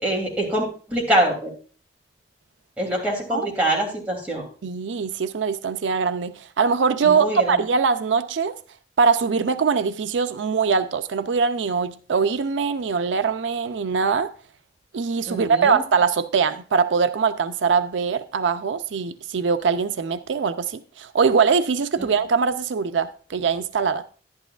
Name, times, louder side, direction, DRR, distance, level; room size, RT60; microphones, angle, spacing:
voice 1, 0.0-1.5 2.8-4.4 7.0-7.6 15.3-15.8 22.0-22.1, right 1 dB, 10° right, 2.9 m, -24 dB
voice 2, 4.6-8.5 9.0-14.3 14.9-24.0, right 5 dB, 85° right, 0.5 m, -22 dB
11.5 x 10.5 x 2.4 m
head